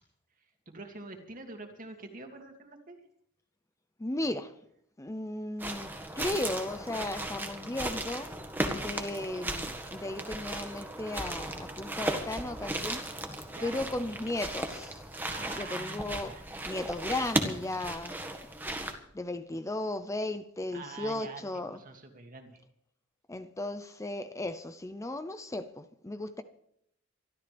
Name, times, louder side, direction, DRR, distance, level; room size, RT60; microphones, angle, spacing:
voice 1, 0.7-3.0 13.5-13.9 15.3-16.4 20.7-22.6, right 3 dB, 45° right, 2.5 m, -45 dB
voice 2, 4.0-4.6 5.0-8.3 8.7-13.3 13.6-15.0 15.4-16.3 16.7-18.2 19.1-21.8 23.3-26.4, left 2 dB, 15° left, 0.6 m, -36 dB
sound 1, 5.6-18.9, right 1 dB, 10° right, 1.7 m, -36 dB
24.5 x 13.0 x 3.4 m
head